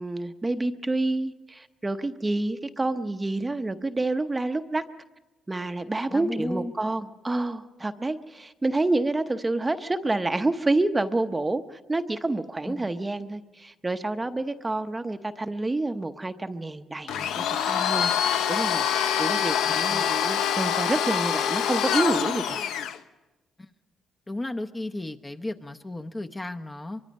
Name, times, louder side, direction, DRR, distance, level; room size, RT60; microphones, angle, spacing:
voice 1, 0.0-4.8 5.5-18.1 18.5-22.6, right 2 dB, 20° right, 9 dB, 0.8 m, -28 dB
voice 2, 6.1-6.7 12.7-12.9 19.7-20.1 23.6-23.7 24.3-27.0, left 1 dB, 20° left, 6 dB, 0.8 m, -34 dB
Domestic sounds home sounds, 17.1-23.0, left 9 dB, 85° left, 0.8 m, -25 dB
24.0 x 23.5 x 5.4 m, 1.1 s
cardioid pair, 90°, 0 cm